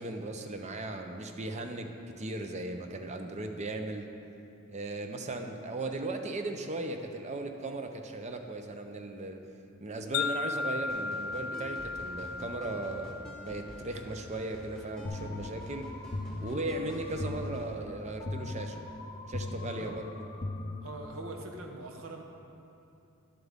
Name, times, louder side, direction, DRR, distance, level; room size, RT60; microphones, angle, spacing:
voice 1, 0.0-4.1 4.7-9.4 9.8-15.9 16.4-18.9 19.3-20.3, right 2 dB, 30° right, 5 dB, 0.6 m, -37 dB
Wind chime, 10.1-14.4, left 4 dB, 80° left, 0.3 m, -36 dB
sound 1, 10.9-17.7, equal, 5° left, 1.4 m, -48 dB
sound 2, 15.0-21.4, left 2 dB, 30° left, 0.5 m, -39 dB
voice 2, 19.6-20.1 20.8-22.2, right 2 dB, 65° right, 2 dB, 1.0 m, -43 dB
11.0 x 7.7 x 3.5 m, 2.8 s
head